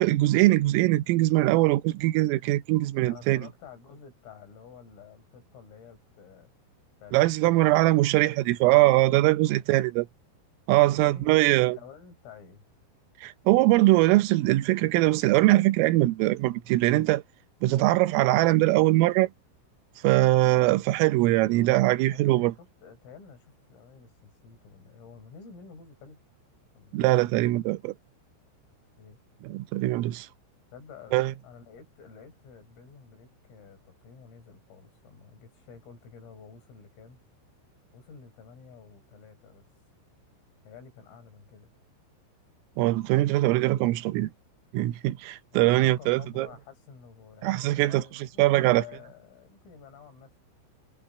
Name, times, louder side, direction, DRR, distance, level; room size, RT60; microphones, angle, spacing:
voice 1, 0.0-3.4 7.1-10.1 10.7-11.8 13.2-17.2 17.6-19.3 20.0-22.5 26.9-27.9 29.4-30.3 31.1-31.3 42.8-44.3 44.7-46.5 47.4-48.0 48.4-48.8, right 18 dB, 85° right, 3.6 m, -22 dB
voice 2, 3.1-6.5 7.0-8.3 9.3-9.6 10.8-11.4 11.6-12.7 21.5-21.8 22.1-26.2 26.8-27.1 29.0-29.2 30.7-37.2 37.9-39.7 40.6-41.7 45.6-50.4, left 6 dB, 80° left, 8.6 m, -50 dB
omnidirectional pair, 5.8 m